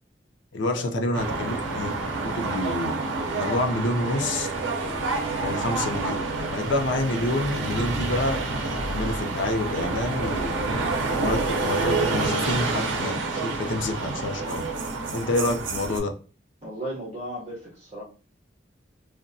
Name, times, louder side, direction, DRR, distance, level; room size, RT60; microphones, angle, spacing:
voice 1, 0.5-2.9 3.3-4.5 5.4-10.5 11.1-14.6 15.1-16.1, left 1 dB, 85° left, 4 dB, 0.5 m, -28 dB
sound 1, 1.1-16.0, right 3 dB, 85° right, 0.5 m, -28 dB
voice 2, 16.6-18.0, equal, 35° right, -5 dB, 0.7 m, -35 dB
2.6 x 2.1 x 2.6 m, 0.36 s
head